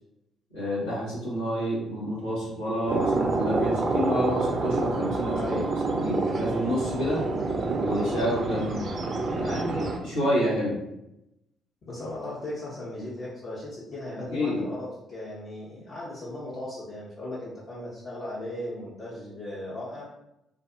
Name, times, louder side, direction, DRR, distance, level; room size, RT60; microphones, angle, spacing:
voice 1, 0.5-5.4 6.0-7.2 7.7-8.8 9.3-10.7 14.3-14.6, equal, 85° left, -9 dB, 0.9 m, -28 dB
sound 1, 2.9-10.0, right 3 dB, 50° right, 0.4 m, -28 dB
voice 2, 5.3-5.7 11.9-20.0, left 1 dB, 50° left, -9 dB, 0.7 m, -37 dB
2.5 x 2.3 x 2.5 m, 0.86 s
hypercardioid pair, 45°, 0 cm